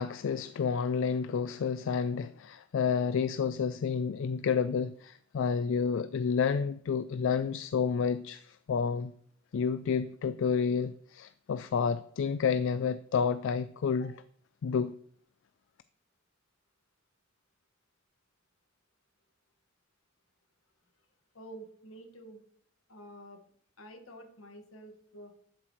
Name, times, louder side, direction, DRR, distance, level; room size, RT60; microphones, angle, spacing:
voice 1, 0.0-9.1 9.5-14.1 14.6-14.9, left 6 dB, 65° left, 0.3 m, -30 dB
voice 2, 21.3-22.4 22.9-23.4 23.8-25.4, right 1 dB, 85° left, 1.6 m, -49 dB
12.0 x 7.5 x 3.1 m
head